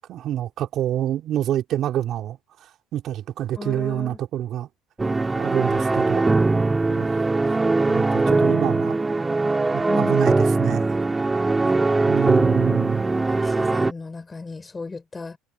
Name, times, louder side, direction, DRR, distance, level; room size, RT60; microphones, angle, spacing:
voice 1, 0.1-4.7 5.3-6.2 6.9-7.2 7.9-9.0 9.7-10.9 12.1-13.0, right 11 dB, 55° right, 3.4 m, -27 dB
voice 2, 3.6-4.2 9.9-10.2 11.6-12.6 13.3-15.4, left 3 dB, 20° left, 5.5 m, -35 dB
sound 1, 5.0-13.9, right 3 dB, 15° right, 1.7 m, -21 dB
supercardioid pair, 85°, 0 cm